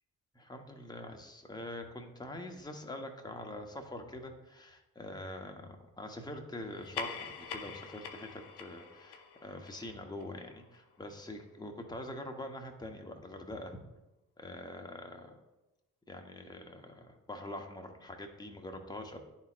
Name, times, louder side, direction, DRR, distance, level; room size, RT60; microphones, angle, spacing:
voice 1, 0.3-13.8 14.4-15.4 16.1-19.2, left 1 dB, 10° left, 3 dB, 1.0 m, -44 dB
sound 1, 6.7-11.6, left 6 dB, 75° left, 0.7 m, -45 dB
10.5 x 4.3 x 2.5 m, 0.99 s
hypercardioid pair, 50°, 40 cm